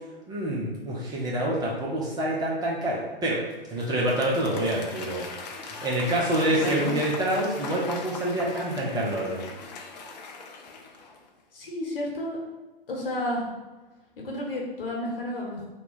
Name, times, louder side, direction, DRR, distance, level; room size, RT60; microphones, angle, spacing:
voice 1, 0.3-5.2 5.8-9.4, right 1 dB, 15° right, -5 dB, 0.6 m, -27 dB
Applause / Crowd, 3.5-11.3, left 4 dB, 45° left, 0.5 m, -40 dB
voice 2, 6.6-6.9 11.5-12.4 12.9-13.5 14.2-15.7, left 1 dB, 70° left, -2 dB, 1.1 m, -31 dB
2.9 x 2.2 x 4.0 m, 1.2 s
figure-of-eight pair, 110°, 29 cm